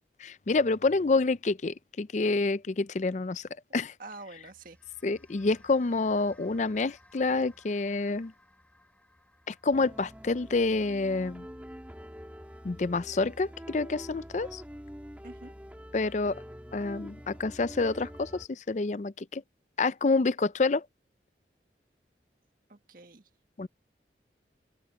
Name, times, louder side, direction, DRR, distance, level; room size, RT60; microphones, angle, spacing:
voice 1, 0.2-3.9 5.0-8.3 9.5-11.5 12.6-14.6 15.9-16.4 16.7-19.4 19.8-20.8 23.6-23.7, left 3 dB, 40° left, 0.4 m, -28 dB
voice 2, 4.0-4.8 15.2-15.5 22.7-23.2, right 2 dB, 50° right, 1.7 m, -46 dB
sound 1, 4.2-14.8, left 1 dB, 10° left, 5.3 m, -62 dB
sound 2, 9.7-18.5, equal, 10° right, 2.4 m, -46 dB
open air
head